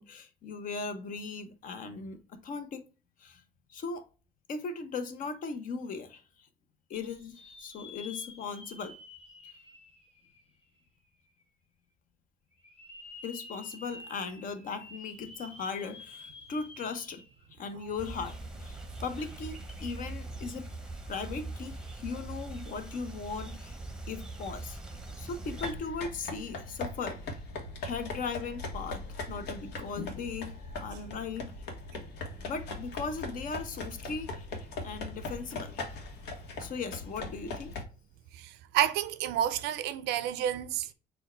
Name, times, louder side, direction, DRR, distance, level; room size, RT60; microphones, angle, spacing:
voice 1, 0.0-2.8 3.2-3.4 3.7-4.1 4.5-6.5 6.9-9.0 9.4-9.5 13.2-17.2 17.5-20.7 21.1-23.8 24.1-24.8 25.2-27.4 27.8-31.7 32.4-35.8 36.6-37.8, left 4 dB, 55° left, 0.7 m, -38 dB
sound 1, 6.9-10.9 11.4-11.5 12.6-17.5 17.9-18.0 20.0-20.1, left 3 dB, 40° left, 2.0 m, -50 dB
sound 2, 18.0-25.7, right 2 dB, 5° right, 0.8 m, -42 dB
sound 3, 25.4-37.8, left 3 dB, 80° left, 1.1 m, -40 dB
voice 2, 38.4-40.9, right 11 dB, 85° right, 0.5 m, -30 dB
4.3 x 2.2 x 4.2 m
cardioid pair, 110°, 17 cm